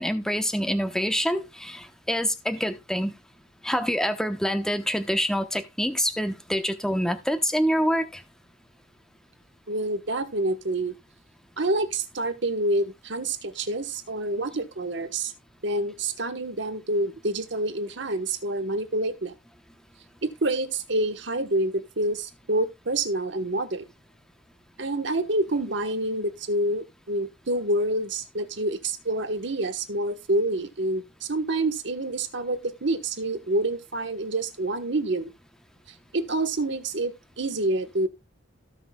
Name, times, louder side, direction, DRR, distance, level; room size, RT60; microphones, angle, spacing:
voice 1, 0.0-3.1 3.6-8.2, equal, 5° left, 0.9 m, -26 dB
voice 2, 9.7-10.9 11.6-15.3 15.6-19.3 20.2-23.9 24.8-35.3 36.1-38.1, right 2 dB, 65° right, 1.2 m, -27 dB
17.5 x 5.9 x 2.3 m
head